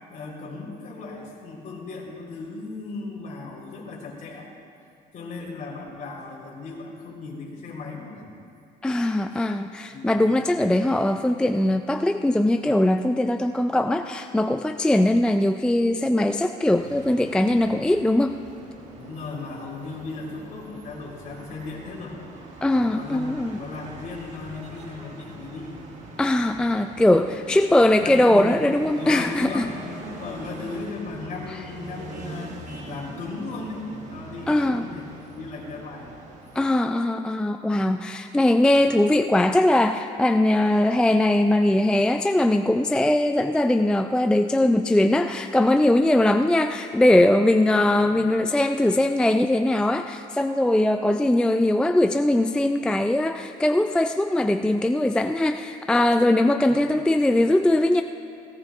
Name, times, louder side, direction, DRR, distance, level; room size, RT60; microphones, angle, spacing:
voice 1, 0.1-4.5 5.1-8.3 9.9-10.4 18.9-22.2 22.7-25.7 28.0-28.5 28.9-36.2 38.7-38.9 48.0-48.3 56.7-56.9, left 3 dB, 50° left, -3 dB, 3.8 m, -36 dB
voice 2, 8.8-18.4 22.6-23.5 26.2-29.7 34.5-34.9 36.6-58.0, left 1 dB, 5° left, 7 dB, 0.3 m, -21 dB
sound 1, 16.7-36.7, right 2 dB, 45° right, 2.0 m, -42 dB
17.5 x 17.0 x 2.5 m, 2.4 s
cardioid pair, 110°, 17 cm